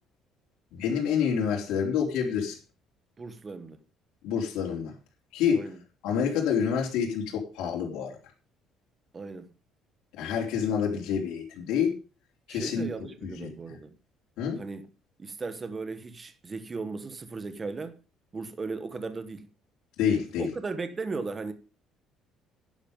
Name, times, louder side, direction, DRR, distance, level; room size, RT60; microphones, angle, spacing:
voice 1, 0.7-2.6 4.2-4.9 5.3-5.6 6.0-8.2 10.1-11.9 12.5-12.9 13.2-13.5 14.4-14.6 20.0-20.5, left 7 dB, 80° left, 4.0 m, -27 dB
voice 2, 3.2-3.8 5.5-5.8 9.1-9.5 12.5-13.9 14.6-14.9 15.2-18.0 18.3-19.5 20.4-21.5, right 4 dB, 20° right, 1.3 m, -36 dB
11.0 x 10.5 x 5.4 m
cardioid pair, 160°, 0 cm